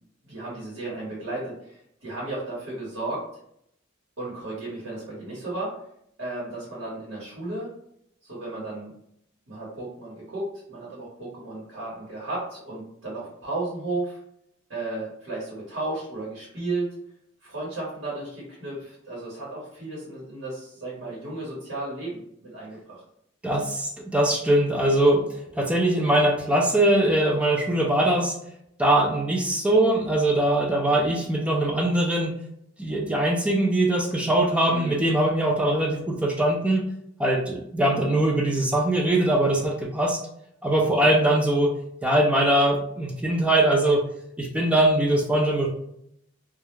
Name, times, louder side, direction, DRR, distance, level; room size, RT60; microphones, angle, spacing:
voice 1, 0.2-3.2 4.2-5.7 6.2-7.7 8.2-8.9 9.5-14.2 14.7-16.9 17.4-23.0 34.7-35.0 40.9-41.1, right 2 dB, 75° right, -6 dB, 1.1 m, -34 dB
voice 2, 23.4-25.2 25.6-28.3 28.8-32.3 32.8-36.8 37.2-40.2 40.6-41.7 42.0-44.1 44.4-45.7, right 1 dB, 5° right, 0 dB, 0.4 m, -22 dB
2.3 x 2.0 x 3.1 m, 0.74 s
head